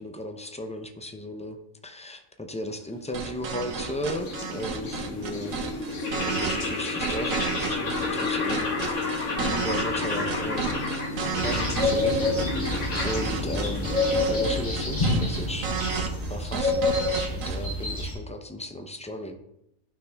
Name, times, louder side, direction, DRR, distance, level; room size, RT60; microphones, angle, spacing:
voice 1, 0.0-1.6 1.8-5.8 6.4-9.1 9.4-11.0 11.3-12.2 13.0-14.0 14.3-15.7 16.3-16.8 17.3-19.4, left 1 dB, 10° left, 5 dB, 0.3 m, -35 dB
sound 1, 3.0-16.4, left 2 dB, 60° left, 2.1 m, -31 dB
sound 2, 3.1-17.6, right 6 dB, 75° right, 1.4 m, -32 dB
sound 3, 11.3-18.1, left 2 dB, 30° left, 3.5 m, -27 dB
12.0 x 5.9 x 3.5 m, 0.83 s
omnidirectional pair, 1.4 m